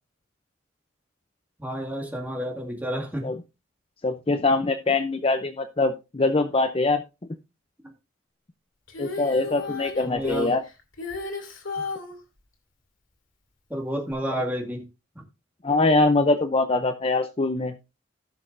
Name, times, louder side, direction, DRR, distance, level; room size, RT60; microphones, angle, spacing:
voice 1, 1.6-3.3 10.0-10.5 13.7-14.8, equal, 10° right, 2.0 m, -30 dB
voice 2, 4.0-7.0 9.0-10.6 15.6-17.7, left 2 dB, 25° left, 0.5 m, -23 dB
Female singing, 8.9-12.2 14.1-14.2, left 4 dB, 70° left, 2.5 m, -34 dB
16.0 x 6.3 x 2.6 m
head